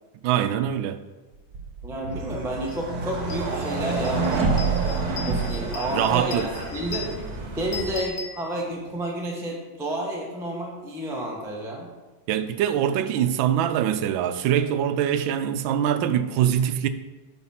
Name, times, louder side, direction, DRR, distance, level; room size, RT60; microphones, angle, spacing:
voice 1, 0.2-1.0 5.9-6.5 12.3-16.9, right 10 dB, 80° right, 1.3 m, -23 dB
sound 1, 1.5-6.5, right 4 dB, 60° right, 1.3 m, -27 dB
voice 2, 1.8-7.2 7.6-11.9, right 1 dB, ahead, 0.8 m, -31 dB
sound 2, 2.7-2.8 3.1-9.0, left 5 dB, 55° left, 1.3 m, -39 dB
sound 3, 2.8-8.0, right 2 dB, 35° right, 0.6 m, -36 dB
8.9 x 4.0 x 5.6 m
omnidirectional pair, 2.2 m